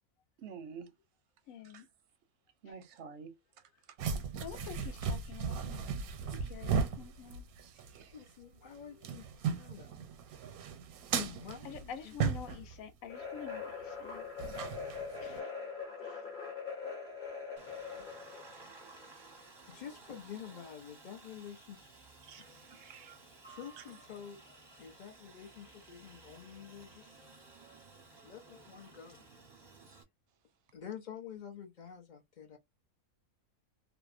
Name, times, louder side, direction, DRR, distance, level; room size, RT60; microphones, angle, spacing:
voice 1, 0.4-0.9 1.7-1.8 2.6-3.4 7.6-8.2 22.2-23.2 23.8-23.9, right 6 dB, 65° right, 0.7 m, -49 dB
voice 2, 1.5-1.9 2.7-2.8 4.1-5.8 6.3-7.5 8.7-9.2 11.6-14.3 15.2-15.5 16.0-16.3 22.8-22.9, left 9 dB, 75° left, 1.0 m, -48 dB
sound 1, 4.0-8.0 8.3-8.4 8.8-12.8 14.4-15.4, right 6 dB, 85° right, 1.1 m, -36 dB
voice 3, 8.1-9.9 10.4-10.5 11.1-12.1 17.6-18.1 19.3-22.1 23.5-24.4 24.8-27.2 28.2-29.2 30.7-32.6, left 8 dB, 55° left, 0.5 m, -48 dB
sound 2, 13.1-18.5, left 5 dB, 40° left, 1.1 m, -42 dB
Aircraft, 17.6-30.0, right 3 dB, 25° right, 0.6 m, -56 dB
2.7 x 2.0 x 2.4 m
omnidirectional pair, 1.5 m